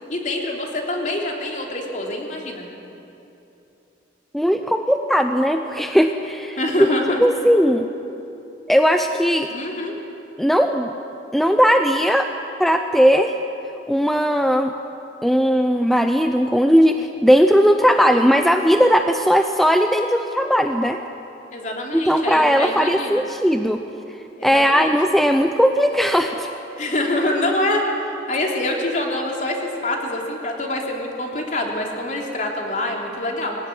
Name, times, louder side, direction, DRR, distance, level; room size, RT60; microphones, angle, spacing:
voice 1, 0.1-2.6 6.6-7.2 9.5-10.0 21.5-23.2 24.4-25.0 26.8-33.6, left 1 dB, 45° left, 0 dB, 3.4 m, -25 dB
voice 2, 4.3-6.6 7.2-7.9 8.7-9.5 10.4-10.9 11.3-12.3 12.6-13.3 13.9-14.7 15.2-21.0 21.9-23.8 24.4-26.5, equal, ahead, 6 dB, 0.7 m, -17 dB
23.0 x 17.0 x 10.0 m, 2.9 s
head